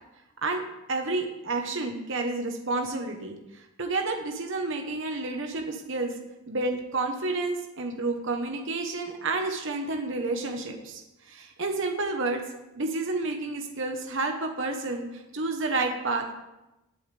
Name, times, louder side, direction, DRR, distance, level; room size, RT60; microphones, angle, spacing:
voice 1, 0.9-3.3 3.8-6.1 6.5-11.0 11.3-12.4 12.7-16.3, right 3 dB, 55° right, 3 dB, 1.2 m, -30 dB
18.5 x 8.5 x 3.4 m, 0.97 s
head